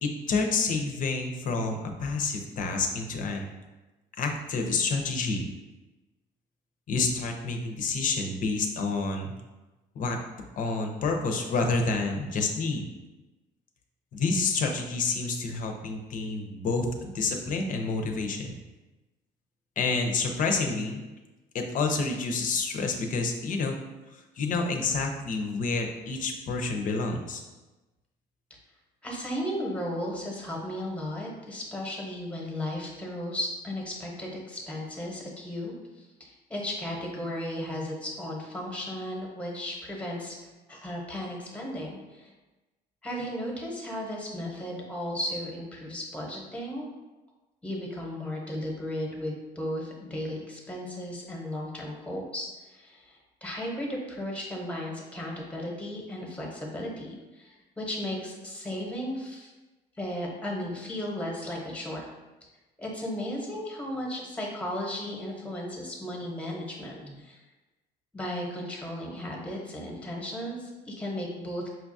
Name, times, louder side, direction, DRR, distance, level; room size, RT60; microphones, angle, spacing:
voice 1, 0.0-3.5 4.2-5.4 6.9-9.3 10.0-10.2 10.6-12.9 14.1-18.5 19.8-21.0 21.5-23.8 24.1-27.4, left 3 dB, 50° left, 3 dB, 0.6 m, -28 dB
voice 2, 29.0-40.3 40.7-42.3 43.0-46.9 47.6-59.5 60.0-62.0 62.8-67.4 68.1-71.7, left 1 dB, 5° left, -2 dB, 0.9 m, -35 dB
5.5 x 2.3 x 2.6 m, 1.1 s
cardioid pair, 110°, 17 cm